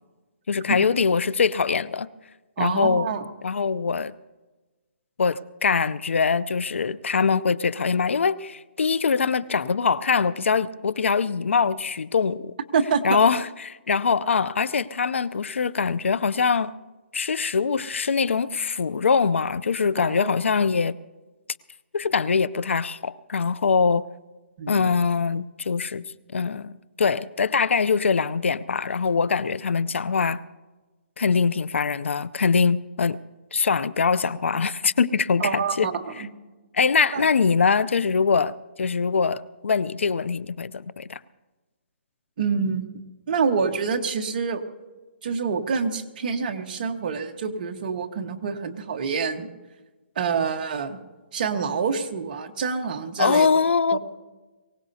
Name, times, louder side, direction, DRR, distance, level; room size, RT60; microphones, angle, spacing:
voice 1, 0.5-2.1 2.6-3.1 3.4-4.1 5.2-12.5 13.0-16.7 17.1-20.9 21.9-24.0 24.7-26.1 26.3-26.7 27.0-30.4 31.2-33.2 33.5-35.9 36.7-41.2 53.2-54.0, left 5 dB, 90° left, 0.6 m, -23 dB
voice 2, 2.6-3.2 12.7-13.2 20.0-20.3 24.6-24.8 35.4-36.3 37.1-37.3 42.4-42.9 43.3-44.6 45.2-49.5 50.1-51.0 51.3-53.5 53.9-54.0, right 5 dB, 45° right, 1.3 m, -26 dB
23.5 x 17.5 x 2.8 m
hypercardioid pair, 160°, 7 cm